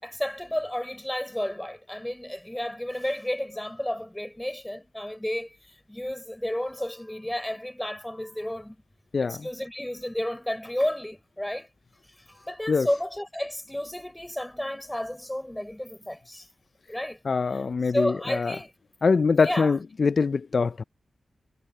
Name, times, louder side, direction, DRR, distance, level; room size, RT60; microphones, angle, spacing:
voice 1, 0.0-8.8 9.2-11.7 12.3-16.5 16.9-17.2 17.5-17.6 17.9-18.7 19.4-19.8, left 1 dB, 10° left, 4.9 m, -32 dB
voice 2, 9.1-9.5 12.7-12.9 17.2-18.6 19.0-20.8, left 4 dB, 55° left, 0.4 m, -23 dB
wide cardioid pair, 95°, 0 cm